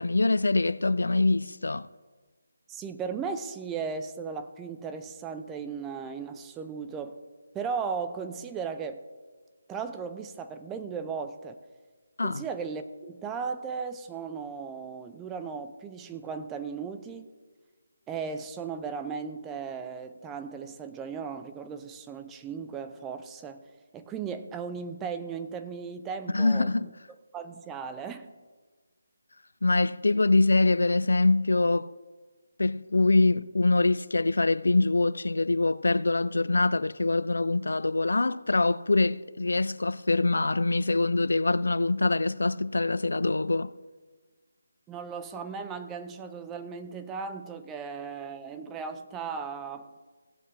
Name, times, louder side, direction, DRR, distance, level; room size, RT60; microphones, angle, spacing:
voice 1, 0.0-1.9 12.2-12.4 26.3-26.9 29.6-31.9 32.6-43.7, left 2 dB, 85° left, 0.3 m, -24 dB
voice 2, 2.7-7.2 7.5-9.0 9.7-11.6 12.2-17.3 18.1-23.6 23.9-26.9 27.3-28.3 44.9-49.9, right 5 dB, 10° right, 0.5 m, -36 dB
17.0 x 7.3 x 3.3 m
figure-of-eight pair, 165°, 0 cm